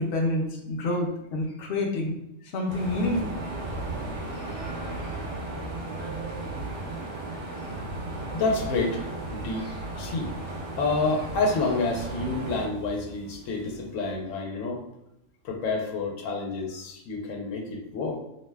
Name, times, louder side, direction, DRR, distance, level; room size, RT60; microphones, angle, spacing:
voice 1, 0.0-2.1 2.5-3.3, left 1 dB, 65° left, 1 dB, 0.8 m, -27 dB
sound 1, 2.7-14.4, left 3 dB, 40° left, 0.4 m, -47 dB
sound 2, 2.7-12.7, right 2 dB, 65° right, 0.9 m, -35 dB
voice 2, 8.3-10.3 10.8-14.8 15.4-18.2, left 3 dB, 90° left, 1 dB, 1.0 m, -29 dB
2.6 x 2.1 x 3.2 m, 0.83 s
omnidirectional pair, 1.3 m